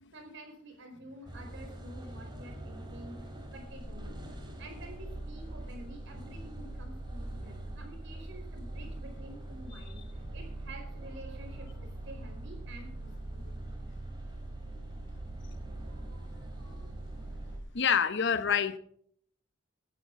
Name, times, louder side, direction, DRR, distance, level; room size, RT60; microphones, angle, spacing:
voice 1, 0.1-3.2 3.5-4.2 4.6-13.5 15.7-17.4, right 1 dB, 65° right, 5.0 m, -50 dB
sound 1, 1.3-17.6, right 1 dB, 25° right, 3.4 m, -42 dB
voice 2, 17.7-18.8, left 7 dB, 60° left, 0.9 m, -27 dB
18.5 x 11.5 x 3.7 m
head